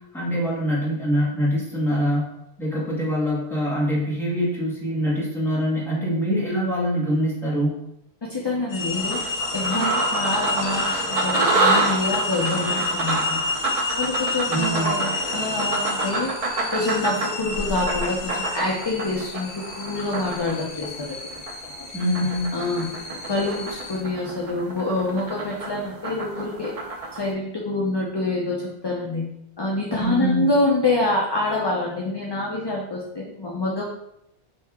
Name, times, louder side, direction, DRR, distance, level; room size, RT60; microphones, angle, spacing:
voice 1, 0.1-2.3 2.6-7.8 14.5-15.0 21.9-22.5 30.0-30.4, equal, ahead, -7 dB, 1.4 m, -24 dB
voice 2, 8.2-9.2 9.5-13.6 14.0-16.3 16.7-19.5 19.8-21.2 21.7-21.9 22.5-22.9 23.3-26.7 27.2-29.3 29.6-33.8, left 2 dB, 35° left, -3 dB, 0.5 m, -26 dB
sound 1, 8.7-24.0, left 3 dB, 90° left, 1.0 m, -31 dB
sound 2, 8.8-21.7 22.0-27.2, right 2 dB, 40° right, 0.6 m, -27 dB
4.4 x 2.8 x 3.5 m, 0.81 s
omnidirectional pair, 1.0 m